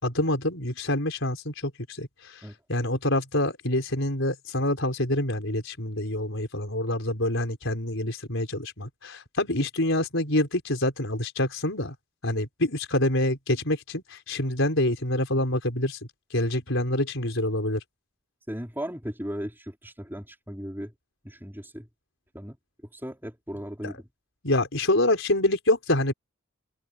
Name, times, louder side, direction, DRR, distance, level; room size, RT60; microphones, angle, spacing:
voice 1, 0.0-11.9 12.2-16.0 16.3-17.8 23.8-24.0 24.4-26.1, left 1 dB, 60° left, 5.9 m, -26 dB
voice 2, 18.5-20.9 21.2-21.9 22.3-22.6 22.9-24.1, equal, 10° right, 5.1 m, -36 dB
open air
head